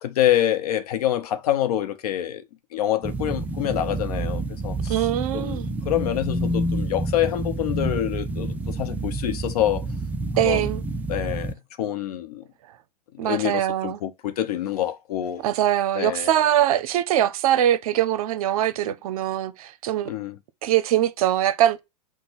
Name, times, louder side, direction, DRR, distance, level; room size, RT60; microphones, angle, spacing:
voice 1, 0.0-2.4 2.7-4.9 5.3-9.8 10.4-10.7 11.1-12.4 13.2-15.4 16.0-16.3 20.0-20.4, left 12 dB, 65° left, 0.7 m, -26 dB
sound 1, 3.0-11.5, right 2 dB, 10° right, 0.3 m, -28 dB
voice 2, 4.9-5.7 10.4-10.8 13.2-14.0 15.4-20.1 20.6-21.8, right 12 dB, 60° right, 0.6 m, -22 dB
6.0 x 2.1 x 4.0 m
hypercardioid pair, 110°, 21 cm